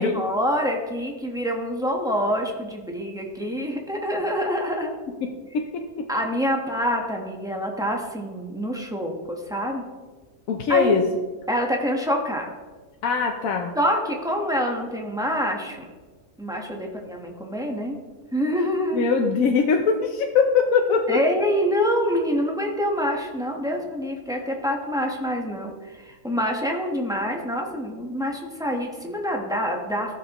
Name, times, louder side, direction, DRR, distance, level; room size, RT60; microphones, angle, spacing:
voice 1, 0.0-4.9 6.1-9.8 10.7-10.9 11.5-12.5 13.7-15.9 16.4-18.0 18.3-19.0 21.1-30.2, equal, 5° right, 1 dB, 1.0 m, -26 dB
voice 2, 5.2-6.1 10.5-11.0 13.0-13.7 18.9-21.2, left 5 dB, 65° left, 2 dB, 1.1 m, -22 dB
15.0 x 6.5 x 3.0 m, 1.4 s
omnidirectional pair, 1.6 m